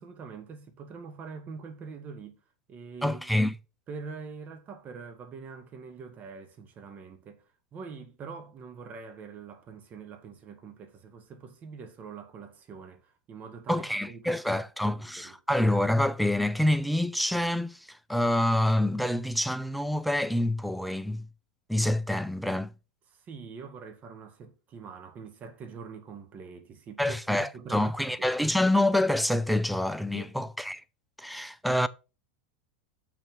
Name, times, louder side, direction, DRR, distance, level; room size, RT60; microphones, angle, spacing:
voice 1, 0.0-2.4 2.7-3.3 3.9-7.4 7.7-15.3 23.3-28.4 30.1-30.4, right 5 dB, 35° right, 1.8 m, -44 dB
voice 2, 3.0-3.5 13.7-21.3 21.7-22.7 27.0-30.8 31.2-31.9, left 1 dB, ahead, 0.6 m, -27 dB
6.9 x 6.0 x 6.1 m
hypercardioid pair, 105°, 5 cm